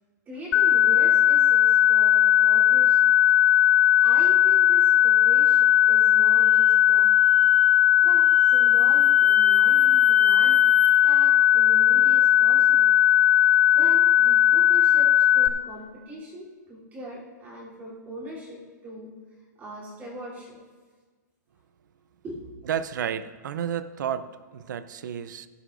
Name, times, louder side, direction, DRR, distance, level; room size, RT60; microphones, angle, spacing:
voice 1, 0.2-3.0 4.0-7.4 8.0-10.7 11.0-12.9 13.7-19.1 19.6-20.6 22.2-22.5, equal, 15° right, -6 dB, 3.2 m, -41 dB
sound 1, 0.5-15.5, left 11 dB, 60° left, 0.6 m, -18 dB
sound 2, 6.4-6.7 7.2-7.7 8.2-10.9, right 4 dB, 45° right, 1.9 m, -40 dB
voice 2, 22.7-25.5, right 9 dB, 80° right, 13 dB, 0.5 m, -31 dB
17.0 x 10.0 x 2.6 m, 1.5 s
hypercardioid pair, 165°, 10 cm